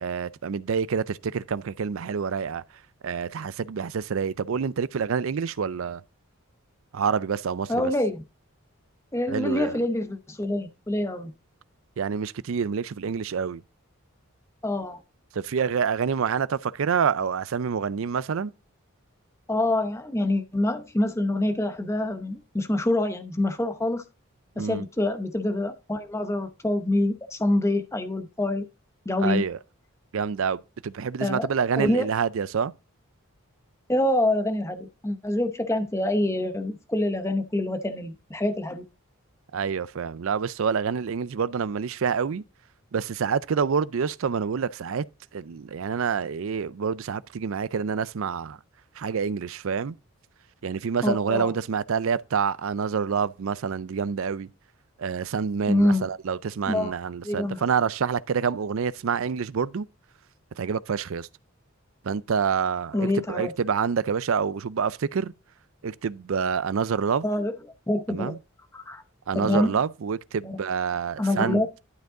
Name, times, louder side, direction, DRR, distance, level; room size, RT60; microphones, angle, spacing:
voice 1, 0.0-2.6 3.0-6.0 6.9-7.9 9.3-9.8 12.0-13.6 15.3-18.5 24.6-24.8 29.2-29.6 30.1-32.7 39.5-42.4 42.9-45.0 45.3-48.6 49.0-50.0 50.6-54.5 55.0-59.9 60.5-61.3 62.0-65.3 65.8-67.3 68.1-68.4 69.3-71.6, right 6 dB, 65° right, 0.4 m, -27 dB
voice 2, 7.7-8.2 9.1-11.3 14.6-15.0 19.5-24.0 24.6-28.6 29.1-29.4 31.2-31.5 31.8-32.1 33.9-38.8 51.0-51.5 55.7-56.0 56.7-56.9 57.2-57.6 62.9-63.5 67.2-67.5 67.9-68.3 68.7-69.0 69.3-69.7 71.2-71.7, left 1 dB, 15° left, 0.8 m, -26 dB
11.5 x 5.2 x 3.7 m
head